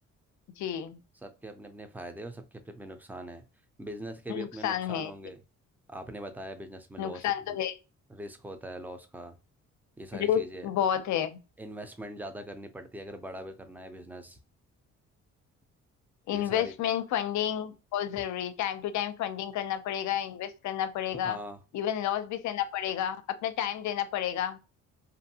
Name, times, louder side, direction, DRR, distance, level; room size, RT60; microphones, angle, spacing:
voice 1, 0.6-1.0 4.3-5.1 7.0-7.8 10.1-11.4 16.3-21.4 21.7-23.2 23.4-24.6, left 10 dB, 70° left, 0.5 m, -30 dB
voice 2, 1.2-3.4 3.8-5.4 5.9-7.6 8.1-9.4 10.0-10.7 11.6-14.4 16.3-16.7 21.1-21.6, right 1 dB, 5° right, 0.5 m, -42 dB
2.6 x 2.5 x 2.7 m
cardioid pair, 90°, 30 cm